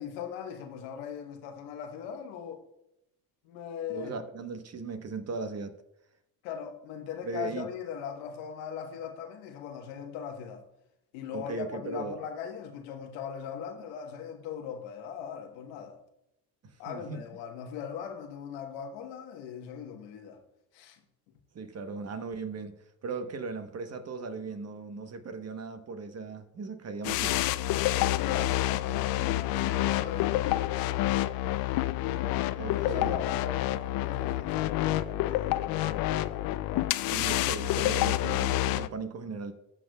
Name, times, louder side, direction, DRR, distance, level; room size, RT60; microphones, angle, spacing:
voice 1, 0.0-2.6 3.4-4.2 6.4-10.6 11.1-16.0 16.8-20.4 20.7-21.0 28.1-30.7 32.8-36.8, left 8 dB, 85° left, 1.3 m, -40 dB
voice 2, 3.9-5.7 7.2-7.7 11.3-12.2 16.6-17.2 21.5-22.8 23.0-27.4 32.6-33.2 37.1-39.5, right 4 dB, 40° right, 1.1 m, -37 dB
sound 1, 27.0-38.9, left 15 dB, 60° left, 0.5 m, -28 dB
16.5 x 6.0 x 2.3 m
supercardioid pair, 75°, 41 cm